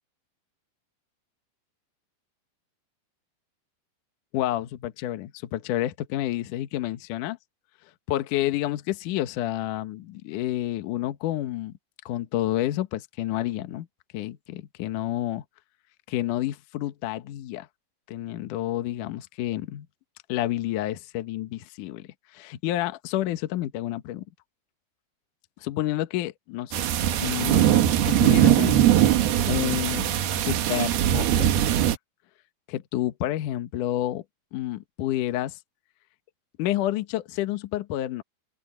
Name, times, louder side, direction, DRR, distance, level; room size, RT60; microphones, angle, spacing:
voice 1, 4.3-7.4 8.1-11.7 12.1-13.9 14.1-15.4 16.1-17.7 18.1-19.9 20.3-24.2 25.6-26.8 27.2-27.7 28.1-29.0 29.5-31.7 32.7-34.2 34.5-35.6 36.6-38.2, left 14 dB, 85° left, 1.8 m, -29 dB
sound 1, 26.7-32.0, right 11 dB, 65° right, 3.0 m, -21 dB
open air
omnidirectional pair, 5.5 m